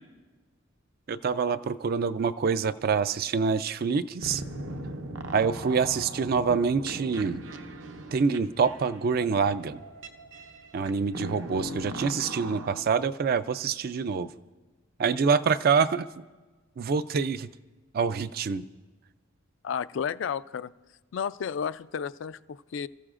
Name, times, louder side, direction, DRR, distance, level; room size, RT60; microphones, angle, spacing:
voice 1, 1.1-4.4 5.3-7.4 8.1-9.8 10.7-14.3 15.0-16.1 16.8-17.5 17.9-18.6, right 5 dB, 50° right, 13 dB, 0.4 m, -26 dB
sound 1, 4.2-12.8, right 1 dB, 70° right, 0.8 m, -39 dB
voice 2, 19.6-20.7 21.1-22.9, left 7 dB, 65° left, 14 dB, 0.3 m, -32 dB
25.5 x 14.5 x 2.5 m, 1.3 s
head